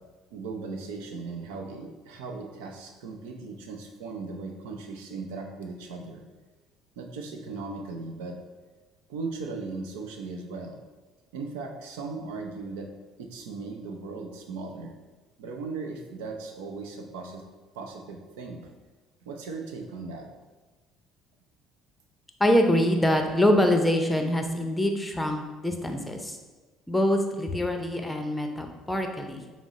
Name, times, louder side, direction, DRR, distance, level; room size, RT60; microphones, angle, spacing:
voice 1, 0.3-6.2 7.0-8.4 9.1-10.8 11.3-12.9 13.2-14.9 15.4-17.4 17.7-18.6 19.2-20.3, right 4 dB, 85° right, 4 dB, 0.5 m, -37 dB
voice 2, 22.4-26.4 26.9-29.4, left 1 dB, 10° left, 4 dB, 0.6 m, -24 dB
6.0 x 2.0 x 4.1 m, 1.3 s
supercardioid pair, 75°, 0 cm